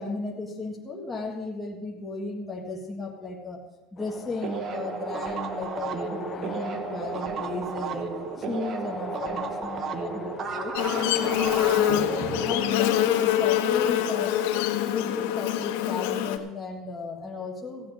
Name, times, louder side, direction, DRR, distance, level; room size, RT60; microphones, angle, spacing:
voice 1, 0.0-3.6 3.9-8.1 8.4-12.1 12.5-14.4 14.8-17.9, left 3 dB, 10° left, -2 dB, 1.6 m, -35 dB
sound 1, 4.0-12.7, left 7 dB, 25° left, 0.6 m, -42 dB
sound 2, 4.4-13.6, right 6 dB, 30° right, 0.9 m, -34 dB
Buzz, 10.7-16.4, left 12 dB, 85° left, 1.1 m, -25 dB
15.0 x 8.4 x 6.2 m, 0.96 s
cardioid pair, 165°, 0 cm